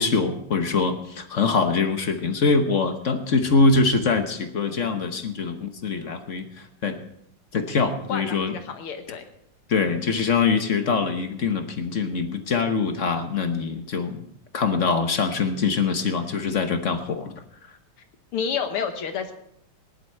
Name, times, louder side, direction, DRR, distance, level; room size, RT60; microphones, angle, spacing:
voice 1, 0.0-6.5 6.8-7.0 7.5-8.6 9.7-14.3 14.5-17.4, left 4 dB, 45° left, 7 dB, 1.0 m, -23 dB
voice 2, 8.1-9.3 18.3-19.3, left 6 dB, 85° left, 7 dB, 2.3 m, -29 dB
17.5 x 11.0 x 4.5 m, 0.71 s
omnidirectional pair, 2.3 m